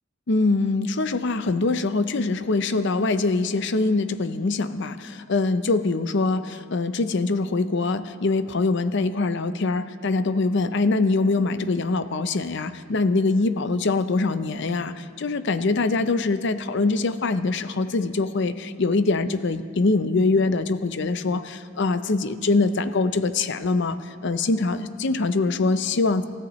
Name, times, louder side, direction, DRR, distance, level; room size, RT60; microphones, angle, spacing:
voice 1, 0.3-26.2, left 3 dB, 60° left, 11 dB, 0.6 m, -23 dB
27.5 x 14.0 x 3.1 m, 2.4 s
head